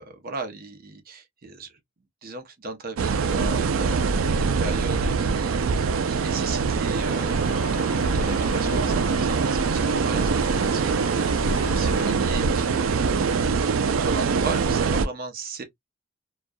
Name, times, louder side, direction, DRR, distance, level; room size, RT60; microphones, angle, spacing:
voice 1, 0.0-1.8 2.2-15.6, right 3 dB, 50° right, 0.7 m, -37 dB
sound 1, 3.0-15.1, right 5 dB, 90° right, 0.4 m, -23 dB
sound 2, 6.9-12.1, left 3 dB, 75° left, 0.8 m, -38 dB
2.3 x 2.2 x 2.5 m
head